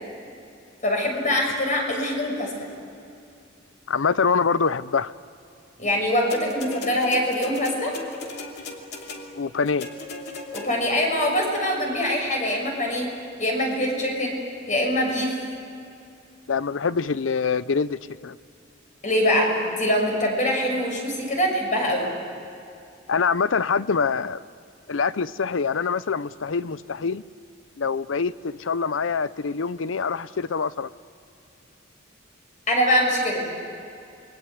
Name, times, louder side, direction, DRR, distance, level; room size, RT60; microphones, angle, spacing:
voice 1, 0.8-2.5 5.8-8.0 10.5-13.1 13.4-14.4 14.7-15.4 19.0-22.1 32.7-33.5, equal, 40° left, 1 dB, 6.5 m, -23 dB
voice 2, 3.9-5.1 9.3-9.9 16.5-18.4 23.1-24.4 24.9-27.2 27.8-30.9, left 5 dB, 80° left, 17 dB, 0.6 m, -25 dB
sound 1, 6.3-11.0 12.0-12.1, left 3 dB, 60° left, 2.8 m, -37 dB
28.0 x 22.5 x 8.3 m, 2.6 s
head